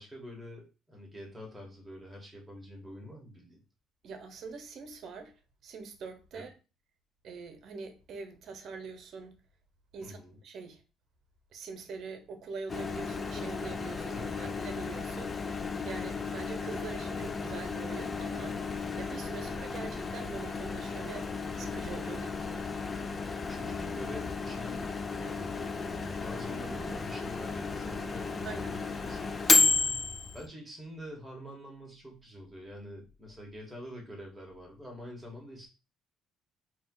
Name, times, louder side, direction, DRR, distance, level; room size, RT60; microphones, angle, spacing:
voice 1, 0.0-3.6 6.3-6.5 10.0-10.4 14.1-14.6 22.1-22.3 23.5-25.7 25.9-29.3 30.3-35.7, equal, 10° right, 1.7 m, -46 dB
voice 2, 4.0-5.3 5.6-6.5 7.2-9.4 9.9-10.8 11.5-15.4 15.8-18.6 19.0-22.7 28.4-28.8, right 4 dB, 55° right, 1.0 m, -44 dB
Microwave oven, 12.7-30.5, left 4 dB, 25° left, 0.5 m, -33 dB
3.8 x 3.0 x 4.0 m
cardioid pair, 105°, 0 cm